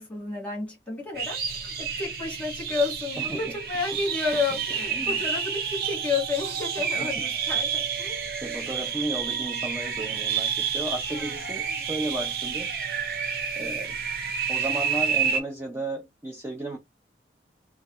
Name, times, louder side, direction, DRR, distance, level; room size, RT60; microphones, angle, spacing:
voice 1, 0.0-8.3 11.1-11.9, left 4 dB, 5° left, 1.5 m, -31 dB
sound 1, 1.2-15.4, right 7 dB, 55° right, 0.6 m, -29 dB
voice 2, 3.2-3.6 4.9-5.2 7.0-7.2 8.4-12.7 13.5-13.9 14.5-16.8, right 1 dB, 15° right, 0.4 m, -34 dB
3.1 x 2.3 x 2.9 m
head